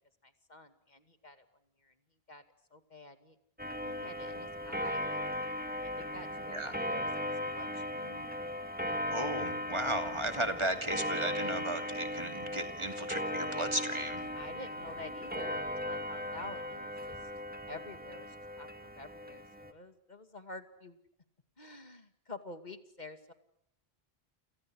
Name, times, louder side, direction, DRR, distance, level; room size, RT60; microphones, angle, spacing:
voice 1, 0.2-1.5 1.8-1.9 2.3-2.4 2.7-3.4 3.8-5.3 5.8-8.3 14.3-17.2 17.7-21.0 21.6-23.3, left 2 dB, 45° left, 9 dB, 2.6 m, -49 dB
Clock, 3.6-19.7, left 1 dB, 10° right, 2.3 m, -37 dB
voice 2, 9.1-14.3, right 1 dB, 25° right, 7 dB, 2.8 m, -35 dB
29.5 x 28.5 x 6.4 m, 0.71 s
omnidirectional pair, 1.1 m